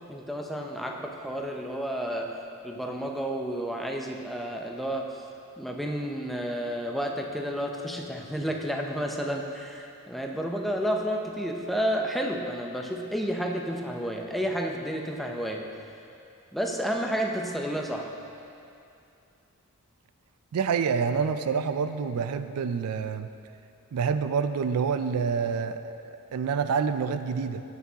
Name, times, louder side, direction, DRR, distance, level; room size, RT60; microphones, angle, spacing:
voice 1, 0.1-2.4 2.6-5.2 5.6-15.7 16.5-18.1, equal, ahead, 1 dB, 0.5 m, -31 dB
voice 2, 20.5-23.3 23.9-27.6, right 6 dB, 80° right, 10 dB, 0.4 m, -27 dB
11.0 x 8.1 x 2.8 m, 2.6 s
head